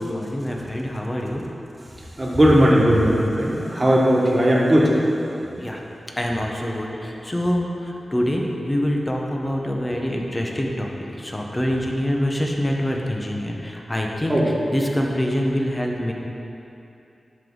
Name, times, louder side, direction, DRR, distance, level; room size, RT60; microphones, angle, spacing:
voice 1, 0.0-1.4 5.6-5.8 6.2-14.4 14.7-16.1, equal, 20° left, 0 dB, 1.2 m, -25 dB
voice 2, 2.2-4.9 14.3-14.5, equal, 30° right, -4 dB, 1.7 m, -17 dB
12.0 x 5.3 x 4.0 m, 2.8 s
cardioid pair, 60°, 0 cm